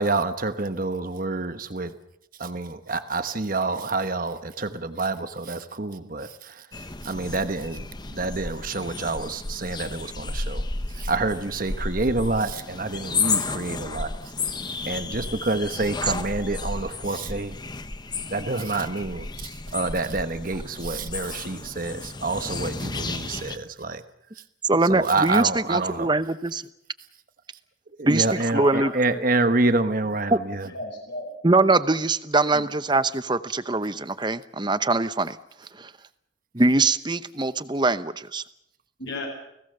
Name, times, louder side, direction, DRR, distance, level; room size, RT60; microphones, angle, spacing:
voice 1, 0.0-1.9 2.4-6.3 7.0-7.8 8.1-10.6 11.0-14.1 14.8-17.5 18.3-19.2 19.7-24.0 24.9-26.1 28.0-30.3, right 3 dB, 45° right, 10 dB, 1.2 m, -27 dB
sound 1, 6.7-23.6, left 3 dB, 20° left, 1.0 m, -32 dB
voice 2, 24.7-26.6 28.1-28.9 30.3-30.4 31.4-35.4 35.8-35.9 36.5-38.4, right 2 dB, 20° right, 13 dB, 0.8 m, -22 dB
voice 3, 28.4-29.3 30.7-31.3 32.5-32.7 39.0-39.3, left 2 dB, 55° left, -1 dB, 7.0 m, -34 dB
30.0 x 18.0 x 6.8 m, 0.79 s
head